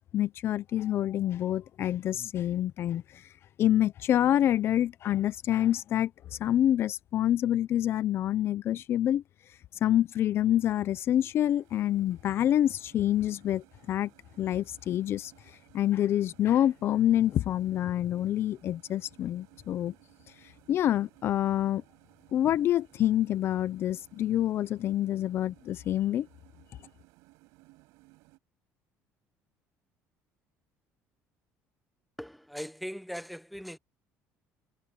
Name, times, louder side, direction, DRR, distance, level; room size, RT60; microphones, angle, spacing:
voice 1, 0.1-3.3 3.6-9.2 9.8-14.1 14.4-19.9 20.7-21.8 22.3-26.3, left 12 dB, 50° left, 0.6 m, -27 dB
sound 1, 11.1-28.4, right 23 dB, 90° right, 7.1 m, -61 dB
voice 2, 32.2-33.8, equal, ahead, 1.1 m, -39 dB
cardioid pair, 130°, 5 cm